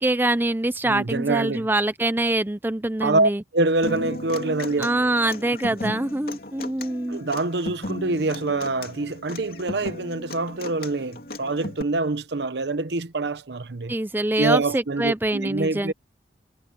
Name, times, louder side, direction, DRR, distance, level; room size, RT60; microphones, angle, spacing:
voice 1, 0.0-3.4 4.8-7.2 13.9-15.9, right 1 dB, 10° right, 0.6 m, -24 dB
voice 2, 0.8-1.7 3.0-4.9 7.1-13.9 14.4-15.9, right 3 dB, 75° right, 0.9 m, -25 dB
Human voice / Acoustic guitar, 3.8-11.8, left 1 dB, 55° left, 3.0 m, -36 dB
head